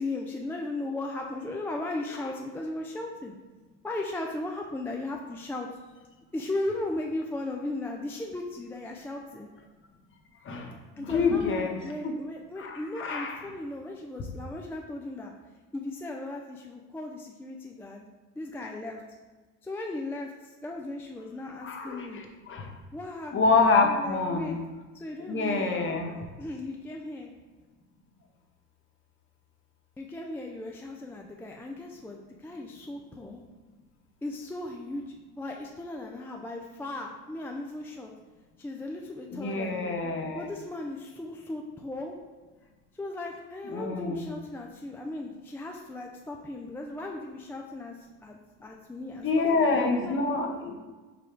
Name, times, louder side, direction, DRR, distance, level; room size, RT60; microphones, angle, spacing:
voice 1, 0.0-3.3 3.8-5.7 6.3-9.5 11.0-15.3 15.7-18.0 18.4-19.0 19.6-20.3 20.6-22.2 22.9-24.6 24.9-27.3 30.0-33.4 34.2-35.0 35.4-38.1 38.6-40.0 40.3-42.1 43.0-47.9 48.2-49.3 49.6-50.2, left 2 dB, 5° left, 0 dB, 0.3 m, -37 dB
voice 2, 11.0-11.8 12.0-12.1 12.6-13.4 21.6-22.7 23.3-24.6 25.2-26.1 39.3-40.5 43.6-44.3 49.2-50.7, left 3 dB, 35° left, 3 dB, 0.9 m, -27 dB
5.0 x 2.3 x 4.5 m, 1.3 s
supercardioid pair, 90°, 35 cm